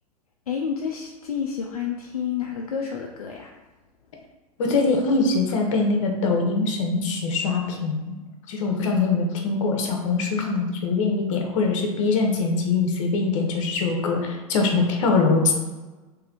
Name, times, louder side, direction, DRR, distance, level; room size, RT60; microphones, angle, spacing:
voice 1, 0.5-3.5, left 7 dB, 70° left, 1 dB, 0.5 m, -29 dB
voice 2, 4.6-8.2 8.5-15.5, left 3 dB, 55° left, 2 dB, 0.9 m, -23 dB
3.5 x 3.2 x 3.5 m, 1.2 s
figure-of-eight pair, 90°, 19 cm